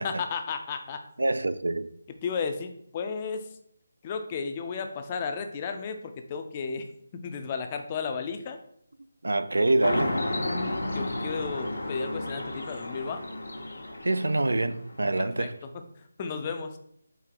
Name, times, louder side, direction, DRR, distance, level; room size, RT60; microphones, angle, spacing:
voice 1, 0.0-1.0 2.2-3.5 4.0-6.9 7.2-8.6 9.7-10.5 10.9-13.2 15.2-15.5 16.2-16.8, left 5 dB, 25° left, 0.4 m, -33 dB
voice 2, 1.2-1.9 9.2-10.3 14.0-15.6, right 2 dB, 85° right, 0.3 m, -26 dB
sound 1, 9.8-15.0, left 1 dB, 90° left, 0.9 m, -32 dB
4.4 x 2.8 x 3.8 m
figure-of-eight pair, 165°, 0 cm